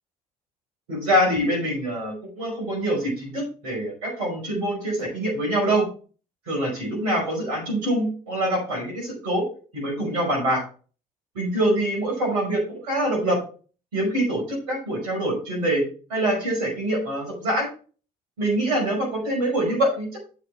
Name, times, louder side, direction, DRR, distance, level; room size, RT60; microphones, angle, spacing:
voice 1, 0.9-5.9 6.5-9.4 9.7-10.6 11.4-13.4 13.9-15.8 16.1-17.7 18.4-20.2, right 1 dB, 80° right, 1 dB, 5.3 m, -24 dB
8.1 x 8.1 x 3.5 m, 0.38 s
hypercardioid pair, 60°, 19 cm